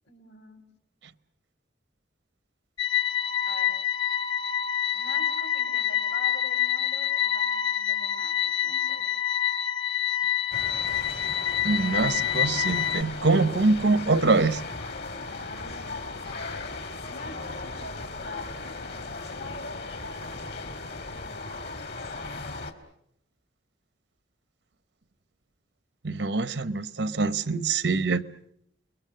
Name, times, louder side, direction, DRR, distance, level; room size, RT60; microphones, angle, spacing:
voice 1, 0.0-0.6 3.4-3.7 4.9-9.1 15.3-18.7 19.2-21.8, left 2 dB, 80° left, 5.0 m, -45 dB
sound 1, 2.8-13.0, left 10 dB, 25° left, 0.9 m, -27 dB
sound 2, 10.5-22.7, left 3 dB, 60° left, 2.3 m, -37 dB
voice 2, 11.6-14.6 26.0-28.2, right 3 dB, 75° right, 0.9 m, -24 dB
29.5 x 22.0 x 6.7 m
head